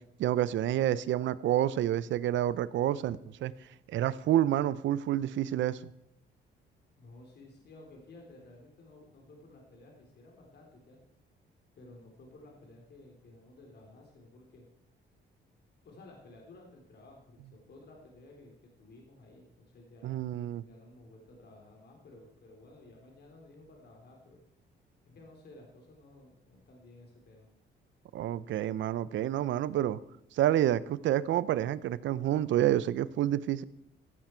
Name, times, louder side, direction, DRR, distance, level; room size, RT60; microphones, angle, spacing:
voice 1, 0.2-3.5 3.9-5.8 20.0-20.6 28.1-30.0 30.3-33.6, right 12 dB, 75° right, 18 dB, 0.6 m, -28 dB
voice 2, 7.0-11.0 11.7-14.6 15.8-20.2 20.6-24.4 25.0-27.5, left 2 dB, 55° left, 1 dB, 3.3 m, -54 dB
15.0 x 8.2 x 4.5 m, 0.78 s
cardioid pair, 90°, 20 cm